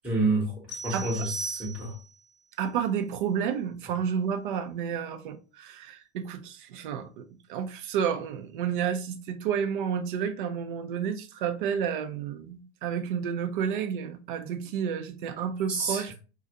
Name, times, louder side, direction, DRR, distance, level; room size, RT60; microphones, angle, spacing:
voice 1, 0.0-1.9 15.7-16.0, right 2 dB, 5° right, 0.8 m, -28 dB
sound 1, 0.7-2.2, right 3 dB, 65° left, 0.9 m, -38 dB
voice 2, 0.9-1.3 2.6-16.1, right 8 dB, 50° right, 0.6 m, -31 dB
3.9 x 2.4 x 2.7 m
figure-of-eight pair, 95°, 34 cm